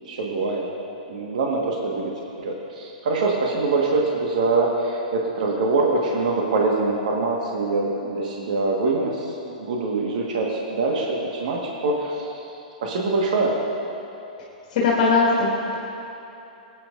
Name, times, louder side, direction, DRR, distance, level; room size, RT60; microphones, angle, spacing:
voice 1, 0.0-0.7 1.1-2.1 2.4-12.5 12.8-13.5, right 3 dB, 70° right, -2 dB, 1.5 m, -24 dB
voice 2, 14.7-15.8, left 3 dB, 60° left, -5 dB, 1.7 m, -20 dB
23.5 x 8.8 x 2.5 m, 2.9 s
hypercardioid pair, 125°, 4 cm